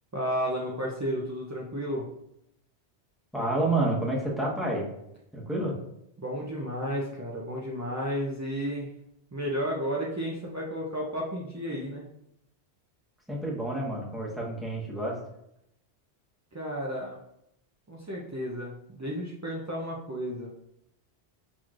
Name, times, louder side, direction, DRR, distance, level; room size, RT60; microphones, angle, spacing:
voice 1, 0.1-2.1 6.2-8.9 9.3-12.0 16.5-17.2 17.9-20.5, equal, 30° right, -4 dB, 0.3 m, -32 dB
voice 2, 3.3-4.9 5.3-5.7 13.3-15.2, right 2 dB, ahead, -4 dB, 0.9 m, -29 dB
6.1 x 3.1 x 2.5 m, 0.78 s
omnidirectional pair, 1.1 m